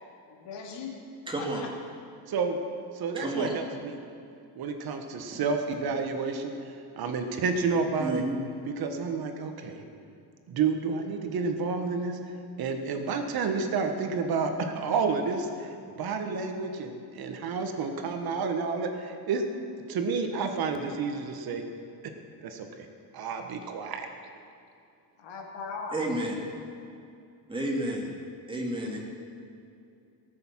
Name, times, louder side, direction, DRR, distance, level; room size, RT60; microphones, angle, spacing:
voice 1, 0.3-0.9 1.4-1.7 25.2-26.4, left 4 dB, 80° left, 1 dB, 2.4 m, -39 dB
voice 2, 1.3-1.6 3.2-3.5 8.0-8.4 25.9-26.3 27.5-28.1 28.5-29.0, right 1 dB, 10° right, -1 dB, 2.4 m, -31 dB
voice 3, 2.3-2.6 2.9-4.0 4.5-8.2 8.7-9.8 10.5-19.4 19.9-21.6 22.0-22.1 22.4-22.9 23.1-24.1, right 4 dB, 60° right, 5 dB, 1.5 m, -30 dB
18.0 x 7.0 x 7.4 m, 2.5 s
cardioid pair, 130°, 42 cm